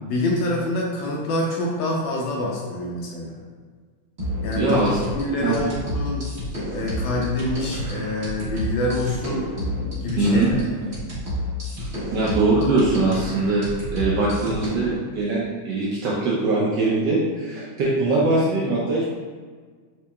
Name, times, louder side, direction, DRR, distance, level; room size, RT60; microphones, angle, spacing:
voice 1, 0.0-3.4 4.4-4.8 5.1-6.3 6.7-9.5 10.0-10.5, left 1 dB, 75° left, -2 dB, 1.2 m, -26 dB
sound 1, 4.2-15.0, left 1 dB, 40° right, 1.1 m, -30 dB
voice 2, 4.5-5.0 5.4-5.6 10.2-10.5 11.8-13.6 13.9-19.1, right 2 dB, 75° right, -5 dB, 1.0 m, -22 dB
4.4 x 2.9 x 2.2 m, 1.5 s
omnidirectional pair, 2.4 m